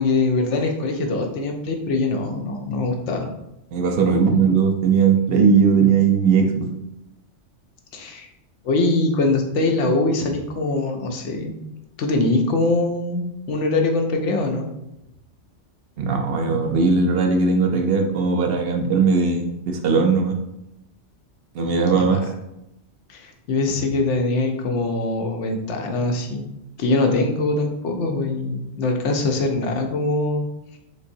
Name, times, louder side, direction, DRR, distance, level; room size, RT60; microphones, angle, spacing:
voice 1, 0.0-3.3 7.9-8.3 8.6-11.6 12.0-14.7 21.9-22.2 23.1-26.4 26.8-30.5, left 2 dB, 80° left, 3 dB, 1.0 m, -23 dB
voice 2, 3.7-6.7 16.0-20.4 21.5-22.2, right 5 dB, 65° right, 3 dB, 0.8 m, -18 dB
4.2 x 3.3 x 2.6 m, 0.86 s
omnidirectional pair, 1.2 m